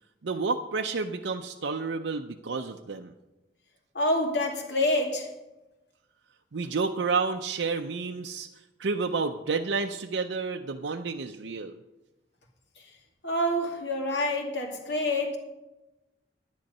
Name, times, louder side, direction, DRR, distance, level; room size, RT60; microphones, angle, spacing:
voice 1, 0.2-3.1 6.5-8.5 8.8-11.7, right 4 dB, 90° right, 3 dB, 0.6 m, -30 dB
voice 2, 3.9-5.3 13.2-15.4, left 1 dB, 80° left, 2 dB, 2.2 m, -27 dB
10.5 x 10.5 x 5.4 m, 1.0 s
head